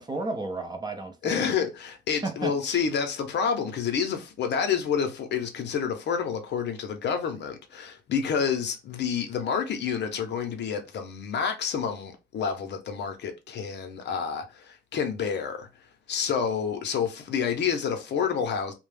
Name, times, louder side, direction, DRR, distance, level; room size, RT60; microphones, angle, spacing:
voice 1, 0.0-1.5 2.2-2.8, right 2 dB, 20° right, 0.5 m, -33 dB
voice 2, 1.2-15.7 16.1-18.7, left 7 dB, 60° left, 0.6 m, -29 dB
2.3 x 2.0 x 3.2 m
cardioid pair, 90°, 20 cm